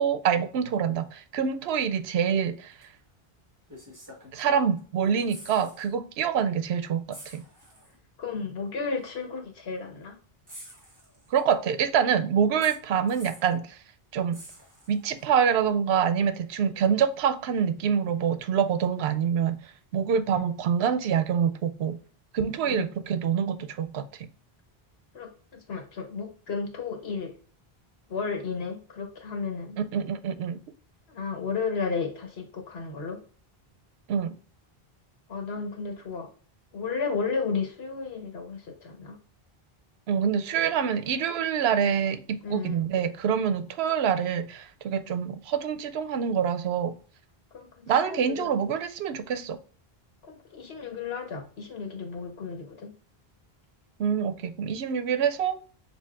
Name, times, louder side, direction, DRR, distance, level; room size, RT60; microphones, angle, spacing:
voice 1, 0.0-2.7 4.3-7.4 11.3-13.8 14.1-14.4 14.9-19.6 19.9-22.0 22.3-24.1 29.9-30.6 34.1-34.3 40.1-47.0 47.9-49.6 54.0-55.6, right 7 dB, 85° right, 0.8 m, -26 dB
sound 1, 2.8-2.9 3.7-4.8 5.1-5.9 6.2-6.4 7.1-8.0 9.0-9.1 10.5-11.5 12.6-13.6 14.3-15.2 17.0-17.1, equal, 20° right, 1.4 m, -48 dB
voice 2, 8.2-10.2 20.3-20.4 22.6-22.9 25.1-25.3 25.7-27.3 28.1-29.8 31.1-33.2 35.3-36.3 36.7-39.2 42.4-42.8 47.5-48.5 50.3-52.9, left 5 dB, 80° left, 1.3 m, -33 dB
6.9 x 2.6 x 2.3 m
omnidirectional pair, 1.0 m